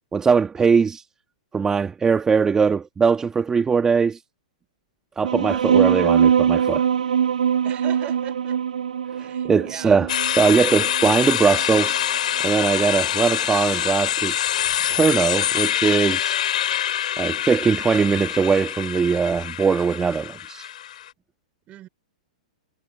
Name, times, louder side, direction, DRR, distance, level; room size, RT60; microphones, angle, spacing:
voice 1, 0.1-1.0 1.5-4.2 5.2-6.8 9.1-12.0 12.4-14.3 14.9-16.4 17.2-20.7, right 5 dB, 15° right, 1.7 m, -21 dB
sound 1, 5.2-12.2, right 8 dB, 80° right, 7.2 m, -22 dB
voice 2, 7.6-8.6 9.2-10.0 21.7-21.9, right 13 dB, 30° right, 5.7 m, -39 dB
sound 2, 10.1-21.1, left 11 dB, 70° left, 6.8 m, -25 dB
hypercardioid pair, 125°, 4 cm